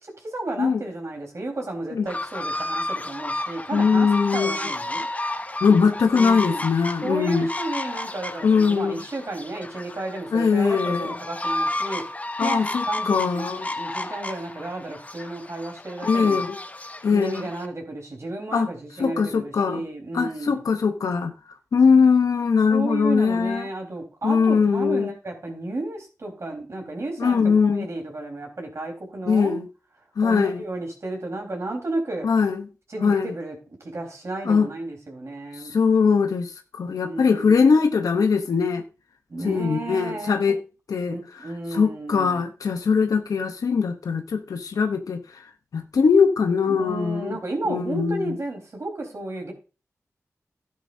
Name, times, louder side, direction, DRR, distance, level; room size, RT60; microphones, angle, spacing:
voice 1, 0.0-5.1 6.1-6.6 7.0-12.0 12.4-16.4 17.1-20.6 22.7-29.6 30.2-32.3 32.9-35.7 37.0-37.8 39.3-40.3 41.1-42.4 46.7-49.5, right 2 dB, 55° right, 4.2 m, -33 dB
sound 1, 2.1-17.7, left 2 dB, 25° left, 1.0 m, -31 dB
voice 2, 3.7-4.6 5.6-7.5 8.4-9.0 10.3-11.1 12.4-13.7 16.0-16.6 17.0-17.5 18.5-18.7 19.0-19.8 20.1-21.3 21.7-23.6 24.2-25.1 27.2-27.9 29.3-29.7 30.2-30.6 32.2-32.7 33.0-33.3 34.4-34.7 35.6-38.8 39.4-40.6 40.9-41.2 41.7-45.2 45.7-47.4 47.7-48.4, left 5 dB, 90° left, 0.9 m, -21 dB
12.5 x 9.9 x 2.7 m
cardioid pair, 60°, 6 cm